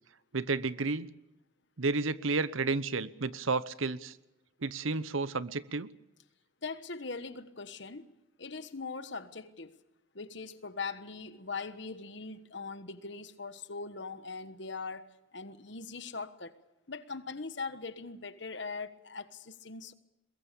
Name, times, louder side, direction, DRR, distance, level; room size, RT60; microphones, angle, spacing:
voice 1, 0.3-1.1 1.8-4.1 4.6-5.9, right 3 dB, 80° right, 0.9 m, -31 dB
voice 2, 6.6-8.1 8.4-9.7 10.1-16.6 16.9-19.9, left 4 dB, 60° left, 1.3 m, -41 dB
22.5 x 21.5 x 6.9 m
head